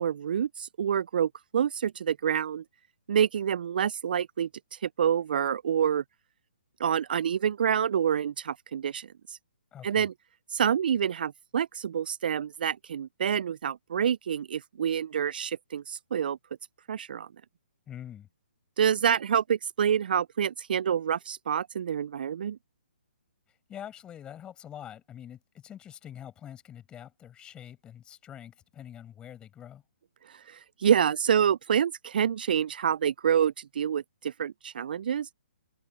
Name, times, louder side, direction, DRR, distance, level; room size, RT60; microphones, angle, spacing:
voice 1, 0.0-2.6 3.1-6.0 6.8-9.4 9.8-10.1 10.5-16.4 16.9-17.3 18.8-22.6 30.3-35.3, right 8 dB, 60° right, 0.4 m, -27 dB
voice 2, 9.7-10.1 17.9-18.3 23.5-29.8, left 10 dB, 15° left, 6.9 m, -45 dB
figure-of-eight pair, 135°, 6 cm